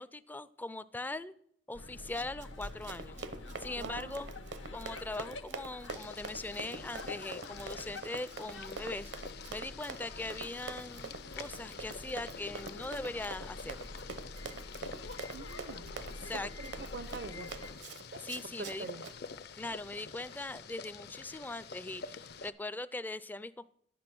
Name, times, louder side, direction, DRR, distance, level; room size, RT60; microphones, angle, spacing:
voice 1, 0.0-1.3 1.7-3.2 3.6-4.3 4.7-9.1 9.5-13.8 16.2-16.5 18.2-18.9 19.6-23.7, left 2 dB, 10° left, 16 dB, 0.3 m, -41 dB
sound 1, 1.7-17.7, left 2 dB, 85° left, 0.9 m, -48 dB
Run, 2.0-19.2, right 4 dB, 70° right, 0.9 m, -45 dB
voice 2, 3.8-4.2 15.3-15.9 16.6-17.5 18.4-18.5 18.8-19.0, right 4 dB, 55° right, 15 dB, 0.5 m, -44 dB
Boiling, 5.9-22.5, left 5 dB, 60° left, 0.6 m, -48 dB
10.5 x 8.6 x 6.0 m, 0.68 s
head